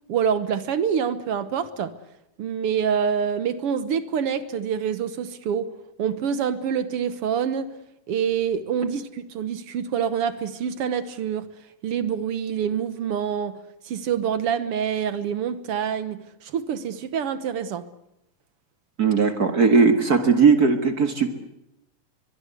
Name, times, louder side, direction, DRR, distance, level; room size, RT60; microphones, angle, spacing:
voice 1, 0.1-1.9 2.4-5.7 6.0-7.7 8.1-11.5 11.8-13.6 13.9-17.8, right 7 dB, 60° right, 13 dB, 1.7 m, -26 dB
voice 2, 19.0-21.3, right 5 dB, 35° right, 7 dB, 1.8 m, -18 dB
23.5 x 22.5 x 8.2 m, 0.87 s
omnidirectional pair, 3.4 m